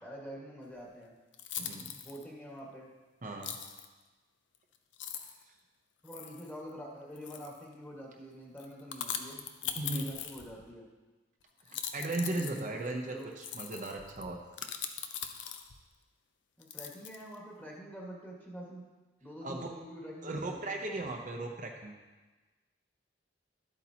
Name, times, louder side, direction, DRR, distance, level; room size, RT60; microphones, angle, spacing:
voice 1, 0.0-1.2 1.9-2.9 6.0-10.9 12.3-13.3 16.6-18.8 19.2-20.8, equal, 10° left, -3 dB, 1.7 m, -46 dB
sound 1, 0.8-0.9 1.3-2.2 3.4-3.9 4.5-4.6 4.9-5.4 6.1-6.5 7.2-7.6 8.6-10.7 11.6-15.8 16.6-17.4, left 9 dB, 85° left, 0.6 m, -41 dB
voice 2, 1.6-1.9 3.2-3.5 9.7-10.1 11.7-14.4 19.4-19.7 20.2-21.9, right 2 dB, 45° right, 1 dB, 0.7 m, -37 dB
11.5 x 8.3 x 2.9 m, 1.2 s
head